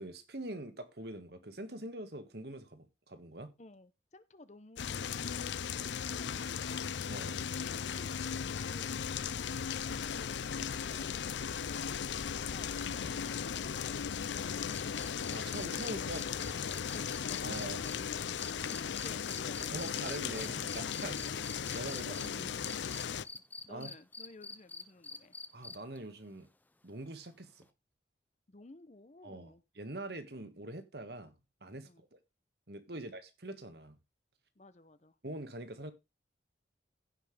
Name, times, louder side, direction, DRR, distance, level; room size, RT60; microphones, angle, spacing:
voice 1, 0.0-3.5 7.1-7.4 13.0-13.1 15.3-16.2 17.4-17.9 19.7-21.4 21.7-22.6 23.7-23.9 25.5-26.5 26.8-27.6 29.2-31.3 31.6-32.2 32.7-33.9 35.2-35.9, right 1 dB, 60° right, 1.6 m, -44 dB
voice 2, 3.6-5.2 5.8-12.0 12.2-14.3 15.9-16.5 18.6-20.0 20.3-21.1 23.7-25.4 28.5-29.6 31.8-32.0 34.6-35.2, left 2 dB, 40° left, 0.8 m, -56 dB
sound 1, 4.8-23.3, left 7 dB, 75° left, 0.5 m, -37 dB
sound 2, 14.7-22.3 22.6-26.0 27.6-27.7, left 3 dB, 10° left, 0.6 m, -47 dB
15.5 x 5.8 x 3.4 m
head